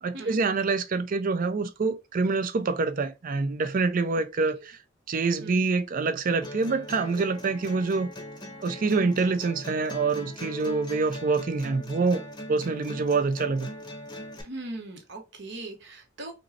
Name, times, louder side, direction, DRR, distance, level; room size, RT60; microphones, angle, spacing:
voice 1, 0.0-4.8 5.1-8.1 8.6-12.2 12.5-13.7, right 4 dB, 45° right, 0.4 m, -26 dB
sound 1, 6.4-14.4, left 1 dB, 20° left, 0.7 m, -41 dB
voice 2, 14.4-16.3, right 2 dB, 65° right, 0.9 m, -39 dB
5.2 x 2.1 x 2.6 m
head